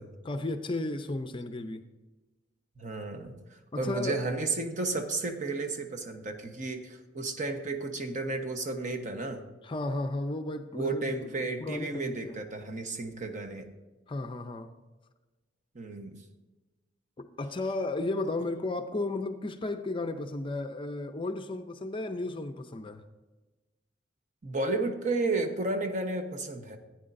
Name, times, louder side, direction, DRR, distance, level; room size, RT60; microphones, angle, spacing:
voice 1, 0.2-1.8 3.7-4.3 9.6-12.4 14.1-14.7 17.2-23.0, left 2 dB, 30° left, 0.5 m, -34 dB
voice 2, 2.8-3.3 3.8-9.4 10.7-13.7 15.7-16.2 24.4-26.8, right 3 dB, 45° right, 1.0 m, -32 dB
15.0 x 9.2 x 2.6 m
head